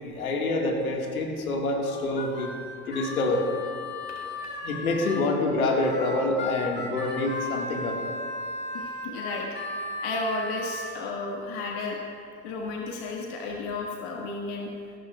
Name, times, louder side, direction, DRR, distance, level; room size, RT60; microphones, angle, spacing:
voice 1, 0.0-2.5 2.9-3.4 4.6-8.0, left 2 dB, 90° left, 1 dB, 1.7 m, -26 dB
Harmonica, 1.8-5.3 5.8-10.9, left 2 dB, 25° left, 2.2 m, -36 dB
voice 2, 4.1-4.5 8.7-12.0 12.4-14.7, left 3 dB, 65° left, 0 dB, 1.5 m, -33 dB
16.0 x 15.0 x 2.2 m, 2.3 s
hypercardioid pair, 65°, 42 cm